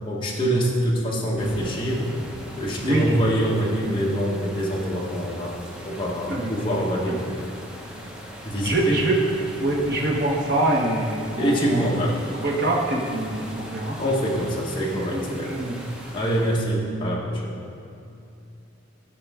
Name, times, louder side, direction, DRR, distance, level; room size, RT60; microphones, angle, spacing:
voice 1, 0.0-2.0 2.6-5.6 5.8-7.4 8.4-9.0 11.3-12.2 14.0-15.6 16.1-17.5, equal, 25° left, -4 dB, 1.1 m, -25 dB
sound 1, 1.4-16.9, equal, 5° right, 0.7 m, -39 dB
voice 2, 8.6-9.2 9.6-11.8 12.4-14.0 15.1-15.2 15.5-15.7, right 2 dB, 50° right, -2 dB, 1.1 m, -24 dB
13.5 x 5.0 x 3.5 m, 2.7 s
head